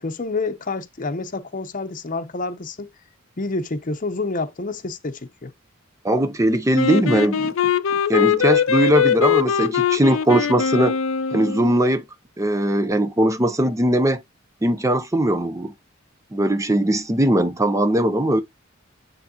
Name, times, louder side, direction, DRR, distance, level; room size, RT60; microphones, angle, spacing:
voice 1, 0.0-2.9 3.4-5.5, left 3 dB, 40° left, 0.8 m, -28 dB
voice 2, 6.0-7.5 8.1-10.9 11.3-12.0 12.4-14.2 14.6-15.7 16.3-18.4, right 1 dB, 15° right, 0.5 m, -20 dB
Wind instrument woodwind instrument, 6.7-11.8, left 7 dB, 70° left, 0.5 m, -21 dB
9.4 x 3.5 x 2.9 m
head